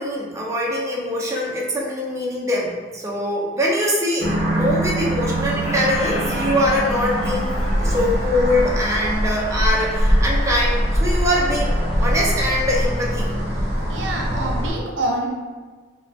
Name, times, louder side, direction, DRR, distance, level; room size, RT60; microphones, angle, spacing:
voice 1, 0.0-7.5 7.8-13.3, left 1 dB, 15° right, -4 dB, 0.6 m, -23 dB
sound 1, 4.2-14.7, equal, 55° right, 1.1 m, -22 dB
Squeak, 4.7-5.2 5.5-13.1, left 1 dB, 35° left, 0.4 m, -36 dB
voice 2, 13.9-15.3, right 1 dB, 85° right, 0 dB, 0.6 m, -26 dB
5.2 x 2.2 x 2.7 m, 1.4 s
head